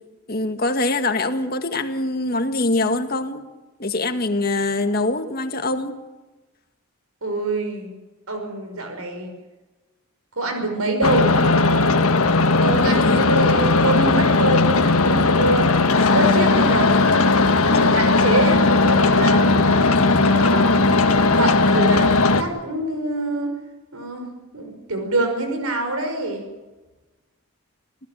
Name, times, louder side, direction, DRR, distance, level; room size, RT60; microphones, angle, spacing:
voice 1, 0.3-3.4 3.8-6.0 12.9-13.2, left 2 dB, 45° left, 7 dB, 1.8 m, -23 dB
voice 2, 7.2-7.9 8.3-9.3 10.4-11.4 12.6-19.8 20.2-20.9 21.4-23.6 23.9-26.4, right 2 dB, 85° right, 5 dB, 5.7 m, -25 dB
sound 1, 11.0-22.4, left 3 dB, 90° left, 1.6 m, -17 dB
27.5 x 16.0 x 9.3 m, 1.2 s
head